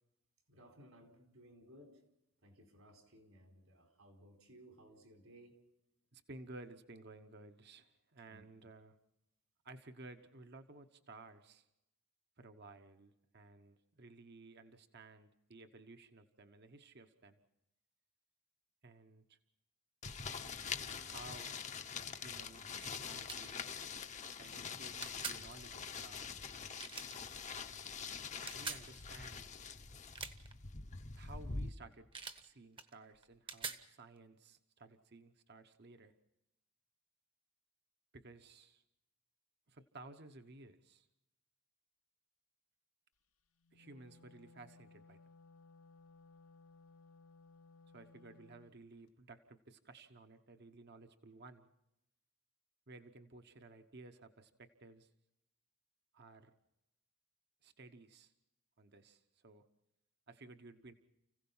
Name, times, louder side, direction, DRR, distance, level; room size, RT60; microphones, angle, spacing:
voice 1, 0.5-2.0 2.4-5.6 8.3-8.5, equal, 80° right, 4.4 m, -60 dB
voice 2, 6.1-9.0 9.6-11.7 12.4-17.4 18.8-19.4 20.9-21.7 22.0-23.6 24.4-26.6 28.4-29.4 31.2-32.1 32.3-36.1 38.1-38.8 39.7-41.1 43.7-45.2 47.9-51.7 52.9-55.1 56.1-56.5 57.6-58.3 58.8-59.6 60.3-60.9, right 2 dB, 50° right, 1.0 m, -56 dB
sound 1, 20.0-31.7, left 5 dB, 35° left, 0.8 m, -45 dB
sound 2, 22.7-23.0 23.3-23.5 25.0-25.4 26.8-27.2 28.5-28.9 30.0-30.5 32.1-32.4 32.8-33.8, right 5 dB, 25° right, 1.0 m, -44 dB
Wind instrument woodwind instrument, 43.6-48.7, left 3 dB, 75° left, 0.9 m, -61 dB
30.0 x 16.0 x 5.6 m
head